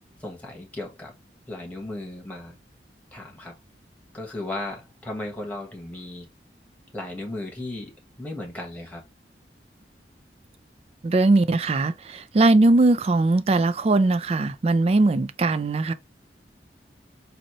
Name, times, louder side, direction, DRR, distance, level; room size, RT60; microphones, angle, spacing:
voice 1, 0.2-1.1 1.5-2.6 3.1-3.5 4.1-6.3 6.9-7.9 8.2-9.0, left 1 dB, 10° left, 1.3 m, -35 dB
voice 2, 11.0-15.9, right 2 dB, 35° right, 0.3 m, -20 dB
4.1 x 2.7 x 3.0 m
head